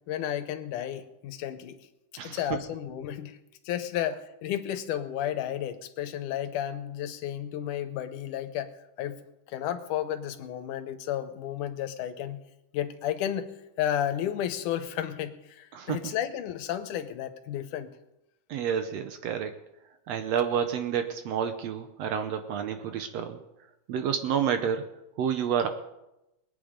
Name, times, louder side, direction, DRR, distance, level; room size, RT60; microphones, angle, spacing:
voice 1, 0.1-1.8 2.2-3.4 3.7-8.7 9.0-9.2 9.5-12.4 12.7-17.9, left 11 dB, 80° left, 10 dB, 2.4 m, -32 dB
voice 2, 2.2-2.6 15.7-16.0 18.5-19.5 20.1-23.4 23.9-24.9 25.2-25.7, right 8 dB, 70° right, 8 dB, 1.7 m, -29 dB
20.5 x 9.2 x 5.1 m, 0.91 s
omnidirectional pair, 3.6 m